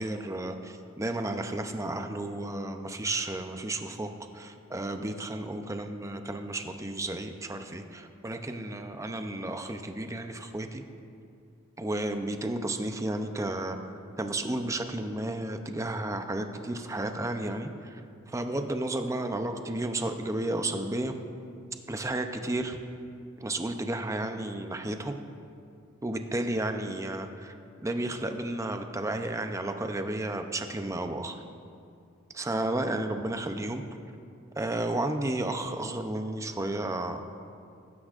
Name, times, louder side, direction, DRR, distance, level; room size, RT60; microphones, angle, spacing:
voice 1, 0.0-10.8 11.8-13.8 14.2-18.0 18.3-21.1 21.9-22.8 23.4-25.2 26.0-27.5 27.8-31.4 32.3-33.8 34.6-37.2, right 1 dB, 15° right, 6 dB, 0.6 m, -32 dB
19.0 x 9.8 x 2.5 m, 2.4 s
head